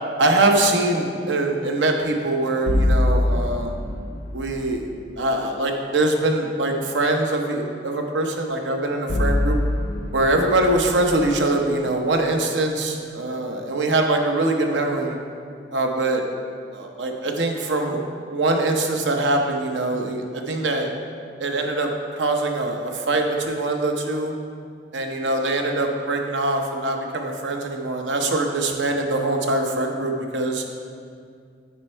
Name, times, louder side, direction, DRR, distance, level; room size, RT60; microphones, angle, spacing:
voice 1, 0.2-3.8 4.3-4.9 5.2-9.6 10.1-15.1 15.7-16.2 16.7-20.9 21.4-24.3 24.9-30.6, right 2 dB, 75° right, 3 dB, 0.8 m, -23 dB
sound 1, 2.7-4.8 9.1-12.3, left 1 dB, 70° left, 0.6 m, -24 dB
9.2 x 4.2 x 4.4 m, 2.3 s
head